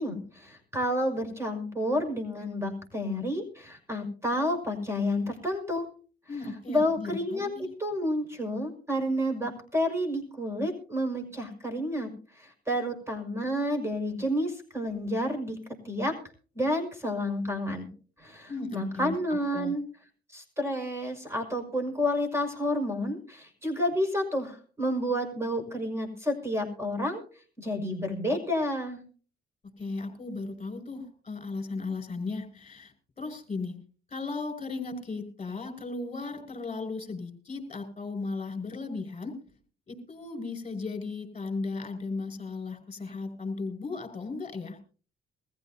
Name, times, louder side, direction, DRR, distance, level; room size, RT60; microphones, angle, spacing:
voice 1, 0.0-5.9 6.7-12.1 12.4-15.6 15.8-16.1 16.5-17.9 18.2-19.8 20.3-27.2 27.6-29.0, equal, 15° right, 5 dB, 6.0 m, -30 dB
voice 2, 6.3-7.7 18.5-19.8 29.8-33.8 34.1-39.4 39.9-44.8, left 3 dB, 30° left, 4 dB, 5.4 m, -36 dB
22.5 x 15.0 x 2.8 m, 0.39 s
cardioid pair, 90°, 20 cm